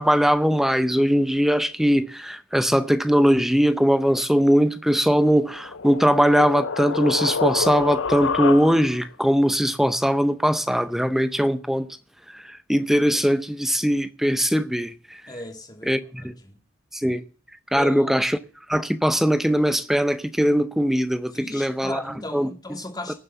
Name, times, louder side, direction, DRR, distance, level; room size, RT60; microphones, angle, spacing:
voice 1, 0.0-11.9 12.3-12.4 12.7-14.9 15.9-16.3 17.0-17.2 17.7-18.3 18.7-22.0 22.3-22.5, equal, ahead, 0.6 m, -20 dB
sound 1, 5.3-9.1, left 5 dB, 75° left, 0.6 m, -27 dB
voice 2, 15.3-16.6 17.7-18.1 21.3-23.1, left 1 dB, 20° left, 2.3 m, -36 dB
18.0 x 7.4 x 6.9 m
head